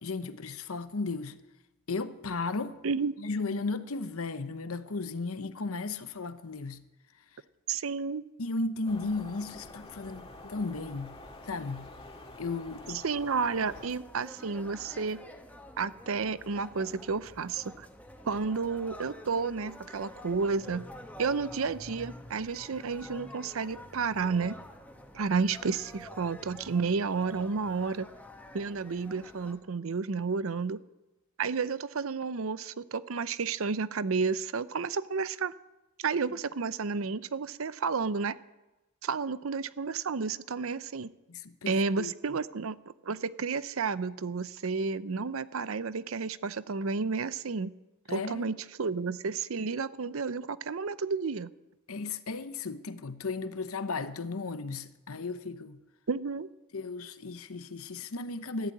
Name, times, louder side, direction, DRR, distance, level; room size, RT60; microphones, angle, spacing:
voice 1, 0.0-1.4 1.9-2.8 3.2-6.8 8.4-11.1 11.5-11.9 12.4-13.0 41.3-42.1 48.1-48.5 51.9-55.8 56.7-58.7, left 3 dB, 70° left, 0.9 m, -35 dB
voice 2, 7.7-8.2 13.0-15.2 15.8-17.9 18.2-20.9 21.2-24.6 25.1-28.1 28.5-30.8 31.4-35.5 36.0-38.4 39.0-41.1 41.7-42.8 43.0-47.7 48.1-51.5 56.1-56.5, right 4 dB, 65° right, 0.6 m, -31 dB
sound 1, 8.8-13.9, left 2 dB, 25° left, 1.9 m, -48 dB
sound 2, 13.7-29.5, left 1 dB, 5° left, 1.6 m, -48 dB
14.5 x 11.0 x 8.6 m
head